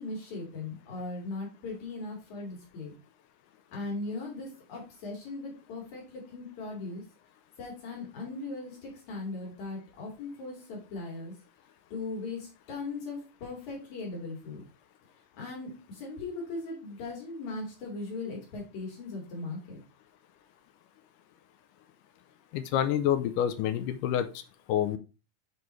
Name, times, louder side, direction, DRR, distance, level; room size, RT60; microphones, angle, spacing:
voice 1, 0.0-3.0 3.7-7.0 7.6-11.3 11.9-14.6 15.4-19.8, left 3 dB, 60° left, -1 dB, 3.6 m, -38 dB
voice 2, 22.5-24.3 24.7-25.0, left 10 dB, 80° left, 10 dB, 2.1 m, -27 dB
7.6 x 4.6 x 3.1 m, 0.32 s
omnidirectional pair, 3.9 m